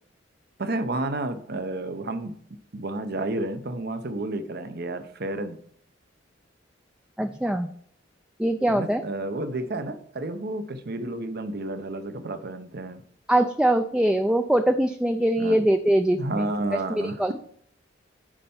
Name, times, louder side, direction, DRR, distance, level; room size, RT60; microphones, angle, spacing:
voice 1, 0.6-2.4 2.7-5.6 8.7-13.0 15.4-15.6 16.2-17.3, right 2 dB, 55° right, 10 dB, 0.8 m, -31 dB
voice 2, 7.2-7.7 8.4-9.0 13.3-16.5 16.9-17.3, right 1 dB, 5° right, 7 dB, 0.4 m, -22 dB
9.9 x 4.4 x 5.5 m, 0.65 s
head